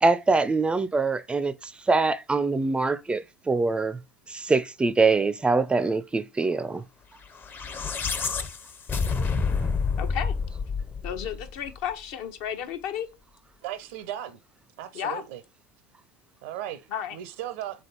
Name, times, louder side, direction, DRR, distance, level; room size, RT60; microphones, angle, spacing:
voice 1, 0.0-4.0 4.3-6.8 9.6-9.7, right 3 dB, 15° right, 0.4 m, -24 dB
sound 1, 7.4-11.8, left 5 dB, 30° left, 0.6 m, -28 dB
voice 2, 10.0-10.3 11.0-13.1 14.9-15.2 16.9-17.2, left 9 dB, 60° left, 0.8 m, -32 dB
voice 3, 13.6-14.4 14.8-15.4 16.4-16.8 17.1-17.8, right 12 dB, 65° right, 0.5 m, -36 dB
3.8 x 3.5 x 3.9 m
hypercardioid pair, 80°, 7 cm